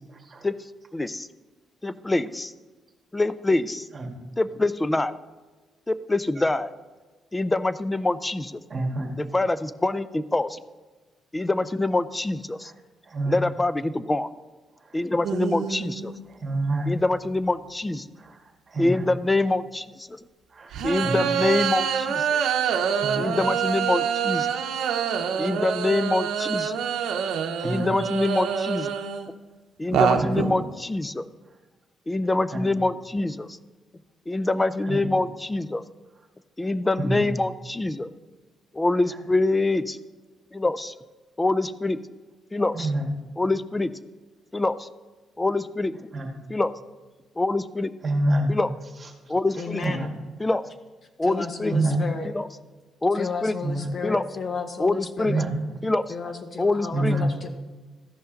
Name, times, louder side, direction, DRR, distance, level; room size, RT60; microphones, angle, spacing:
voice 1, 0.9-1.3 1.8-2.5 3.1-3.9 4.4-5.1 5.9-6.7 7.3-8.6 9.2-10.6 11.3-12.7 13.3-14.3 14.9-16.1 16.9-18.1 18.8-20.2 20.8-22.4 23.2-24.5 25.4-26.7 27.6-28.9 29.8-31.3 32.1-33.6 34.3-35.8 36.6-38.1 38.7-40.0 40.5-40.9 41.4-42.0 42.5-42.9 43.4-43.9 44.5-44.9 45.4-46.0 46.5-46.7 47.4-47.9 48.5-48.7 49.3-49.8 50.4-50.6 51.2-51.7 52.2-52.5 53.0-53.6 54.0-54.2 54.8-55.4 55.8-56.0 56.6-57.2, left 2 dB, 15° left, 15 dB, 0.4 m, -25 dB
voice 2, 8.7-9.1 13.1-13.3 16.4-16.9 18.7-18.9 20.6-20.7 21.0-21.2 23.0-23.3 27.6-27.9 30.2-30.3 32.5-32.6 34.9-35.0 37.0-37.2 42.7-43.0 46.1-46.3 48.0-48.5 49.8-50.1 51.7-52.0 53.6-53.9 55.3-55.5 56.9-57.3, right 2 dB, 35° right, 1 dB, 1.7 m, -26 dB
sound 1, 15.2-16.2 17.0-17.1 20.7-29.3 29.8-30.7, right 7 dB, 80° right, 0.7 m, -26 dB
voice 3, 49.6-50.2 51.2-52.3 53.1-55.4 56.1-57.5, left 4 dB, 40° left, 6 dB, 0.9 m, -33 dB
14.0 x 5.5 x 3.9 m, 1.3 s
cardioid pair, 90°, 0 cm